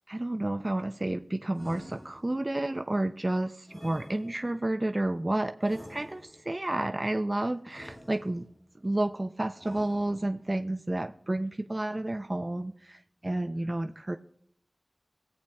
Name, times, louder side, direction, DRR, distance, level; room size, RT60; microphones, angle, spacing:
voice 1, 0.1-8.5 8.8-14.2, right 1 dB, 35° right, 7 dB, 0.4 m, -31 dB
sound 1, 1.5-2.6 3.7-4.7 5.6-6.6 7.7-8.6 9.6-10.5, equal, 35° left, 3.5 m, -49 dB
18.5 x 8.3 x 2.3 m, 0.64 s
wide cardioid pair, 50°, 0 cm